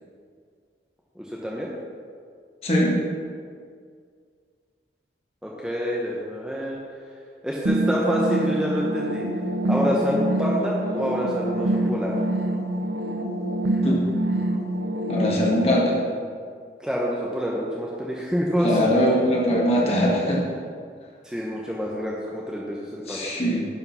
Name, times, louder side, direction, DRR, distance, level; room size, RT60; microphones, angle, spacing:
voice 1, 1.2-1.7 5.4-6.8 7.4-9.3 9.7-12.1 16.8-18.9 21.2-23.3, equal, 5° right, -4 dB, 0.9 m, -27 dB
voice 2, 2.6-3.0 13.8-14.0 15.1-16.0 18.6-20.4 23.1-23.6, equal, 35° left, -4 dB, 1.9 m, -21 dB
sound 1, 7.6-15.6, right 1 dB, 65° right, 0.9 m, -26 dB
11.0 x 5.4 x 5.7 m, 2.1 s
head